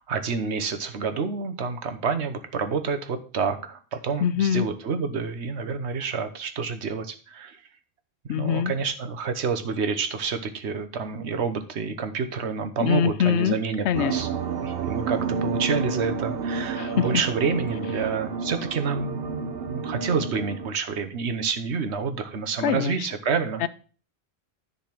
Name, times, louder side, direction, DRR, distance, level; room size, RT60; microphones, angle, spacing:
voice 1, 0.1-7.6 8.3-14.3 14.6-23.6, right 5 dB, 90° right, 1.2 m, -28 dB
voice 2, 4.2-4.7 8.3-8.7 12.8-13.5 13.8-14.1 16.8-17.1 22.6-22.9 23.6-23.7, left 9 dB, 85° left, 0.9 m, -23 dB
sound 1, 13.9-20.7, right 5 dB, 65° right, 1.0 m, -30 dB
10.5 x 4.1 x 5.9 m
omnidirectional pair, 1.1 m